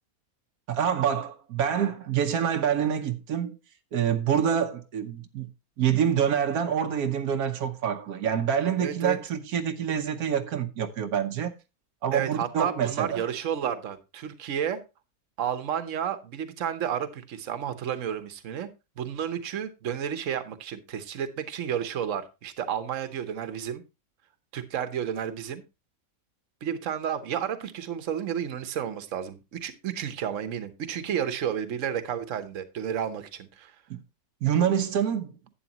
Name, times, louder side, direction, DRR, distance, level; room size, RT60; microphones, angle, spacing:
voice 1, 0.7-3.6 3.9-5.5 5.8-11.5 12.0-13.2 33.9-34.0 34.4-35.3, right 8 dB, 85° right, 1.3 m, -26 dB
voice 2, 8.8-9.2 12.1-14.8 15.4-18.7 19.0-23.8 24.5-25.6 26.6-33.7, right 9 dB, 65° right, 1.3 m, -31 dB
11.5 x 8.5 x 2.9 m
omnidirectional pair, 1.5 m